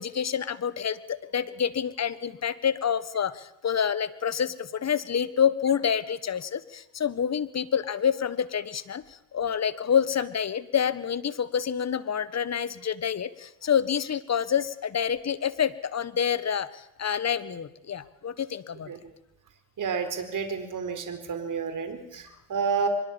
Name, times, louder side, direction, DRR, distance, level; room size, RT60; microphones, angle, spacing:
voice 1, 0.0-18.9, left 8 dB, 35° left, 15 dB, 1.6 m, -28 dB
voice 2, 19.8-22.9, right 6 dB, 45° right, 7 dB, 4.2 m, -30 dB
24.5 x 22.0 x 7.3 m, 0.83 s
supercardioid pair, 95°, 44 cm